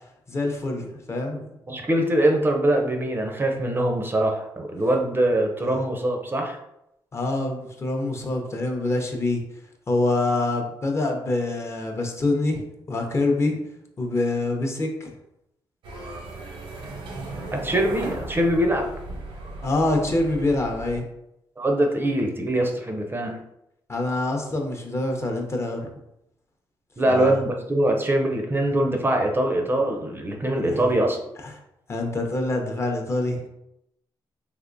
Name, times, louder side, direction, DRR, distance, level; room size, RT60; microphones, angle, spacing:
voice 1, 0.3-1.5 7.1-9.4 9.9-12.6 12.9-13.6 14.0-15.1 19.6-21.1 23.9-25.9 27.1-27.4 30.7-30.8 31.9-33.5, left 2 dB, 30° left, 2 dB, 0.6 m, -25 dB
voice 2, 1.7-6.6 17.5-18.9 21.6-23.4 27.0-31.2, right 1 dB, 25° right, 3 dB, 0.5 m, -23 dB
sound 1, 15.8-21.0, right 2 dB, 85° right, 0.7 m, -36 dB
3.4 x 2.9 x 2.6 m, 0.83 s
cardioid pair, 90°, 9 cm